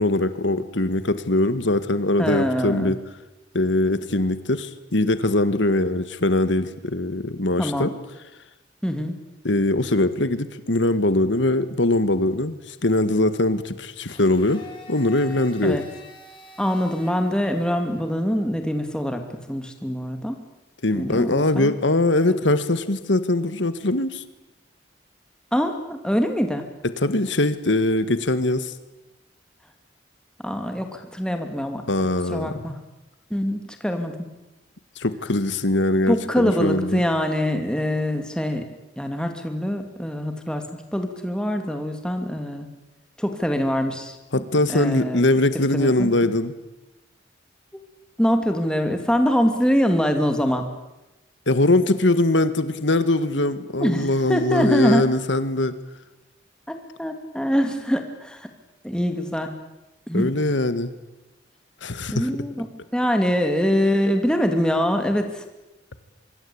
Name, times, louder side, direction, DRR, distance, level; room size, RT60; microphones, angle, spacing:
voice 1, 0.0-3.0 3.5-7.9 9.4-14.6 14.9-15.8 20.8-24.2 27.0-28.7 31.9-32.8 35.0-37.0 44.3-46.5 51.5-55.7 60.1-60.9 61.8-62.3, left 2 dB, 80° left, 12 dB, 1.7 m, -22 dB
voice 2, 2.2-2.9 7.6-7.9 8.8-9.1 15.6-15.8 16.6-20.4 20.9-21.7 25.5-26.6 30.4-31.8 32.3-32.8 33.3-34.1 36.1-38.7 39.0-40.6 40.9-42.7 43.2-44.2 44.7-45.2 45.7-46.1 48.2-50.7 53.3-53.5 53.8-55.0 56.7-58.5 58.8-59.5 60.1-60.3 62.1-65.4, equal, 5° left, 5 dB, 2.7 m, -24 dB
Domestic sounds home sounds, 14.1-18.1, left 2 dB, 25° left, 6.2 m, -45 dB
25.0 x 23.5 x 8.7 m, 0.99 s
head